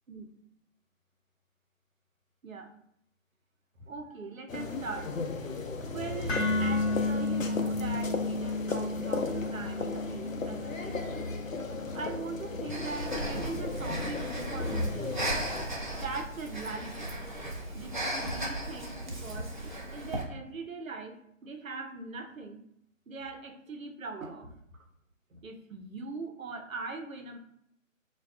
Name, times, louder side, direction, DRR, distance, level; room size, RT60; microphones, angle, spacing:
voice 1, 3.8-5.2 5.8-11.2 11.9-15.2 15.8-17.1 17.7-22.6 23.1-24.8 25.3-27.4, right 3 dB, 80° right, 5 dB, 0.6 m, -41 dB
sound 1, 4.5-15.7, left 3 dB, 75° left, 0.6 m, -35 dB
sound 2, 6.3-14.4, left 3 dB, 50° left, 1.0 m, -34 dB
Breathing, 12.7-20.2, right 1 dB, 35° right, 0.5 m, -36 dB
4.4 x 2.3 x 2.2 m, 0.72 s
figure-of-eight pair, 150°, 40 cm